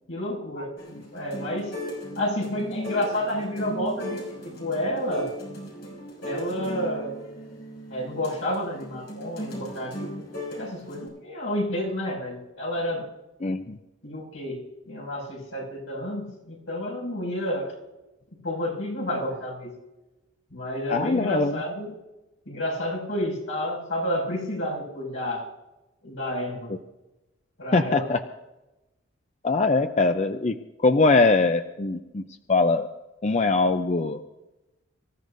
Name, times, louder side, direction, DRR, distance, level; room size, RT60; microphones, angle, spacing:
voice 1, 0.1-1.7 2.2-5.3 6.2-7.2 7.9-10.2 10.6-13.0 14.0-17.7 18.4-19.7 20.5-21.9 22.5-25.5 26.0-26.7 27.6-28.1, left 1 dB, 75° left, -2 dB, 6.1 m, -30 dB
sound 1, 0.8-11.1, equal, 55° left, 6.2 m, -37 dB
voice 2, 13.4-13.8 20.9-21.6 27.7-28.2 29.4-30.6 30.8-32.2 32.5-32.9 33.2-34.2, left 3 dB, 35° left, 7 dB, 0.5 m, -22 dB
25.5 x 15.0 x 2.6 m, 1.0 s
head